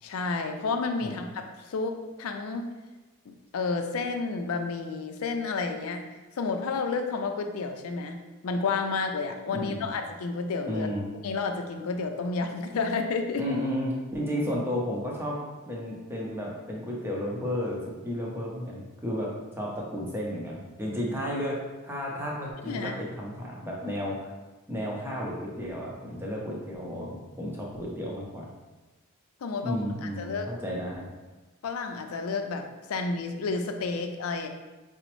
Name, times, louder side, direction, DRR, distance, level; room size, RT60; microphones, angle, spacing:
voice 1, 0.0-2.7 3.3-6.0 6.4-8.2 8.4-10.9 11.2-13.4 22.6-22.9 27.9-28.0 29.4-30.5 31.6-34.5, left 4 dB, 75° left, 5 dB, 0.4 m, -31 dB
voice 2, 9.5-9.9 10.7-11.1 13.4-15.4 15.7-24.3 24.7-28.5 29.6-31.1, equal, 10° right, -3 dB, 0.6 m, -33 dB
5.0 x 2.0 x 3.0 m, 1.2 s
head